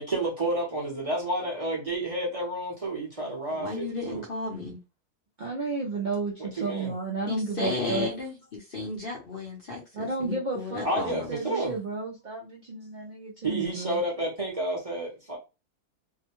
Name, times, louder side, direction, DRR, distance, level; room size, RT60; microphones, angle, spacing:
voice 1, 0.0-4.2 6.4-6.9 10.8-11.7 13.4-15.4, right 1 dB, 30° right, 0.7 m, -30 dB
voice 2, 3.5-4.8 7.3-11.4, left 3 dB, 45° left, 0.8 m, -34 dB
voice 3, 5.4-8.1 9.9-14.0, right 3 dB, 75° right, 0.4 m, -32 dB
2.7 x 2.1 x 2.9 m
omnidirectional pair, 1.6 m